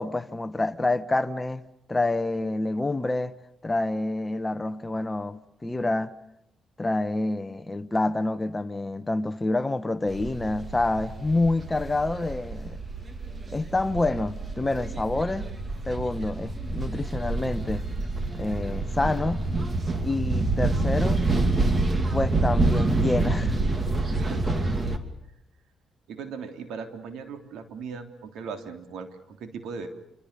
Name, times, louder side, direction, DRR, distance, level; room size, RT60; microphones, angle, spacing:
voice 1, 0.0-3.4 3.6-6.1 6.8-12.8 13.5-15.5 15.9-17.8 18.3-19.5 20.0-21.3 22.1-23.6, left 2 dB, 15° left, 1.2 m, -27 dB
sound 1, 10.1-25.0, right 2 dB, 30° right, 3.0 m, -27 dB
voice 2, 24.2-24.5 26.1-29.9, right 5 dB, 80° right, 3.4 m, -38 dB
28.0 x 25.5 x 6.9 m
cardioid pair, 90°, 0 cm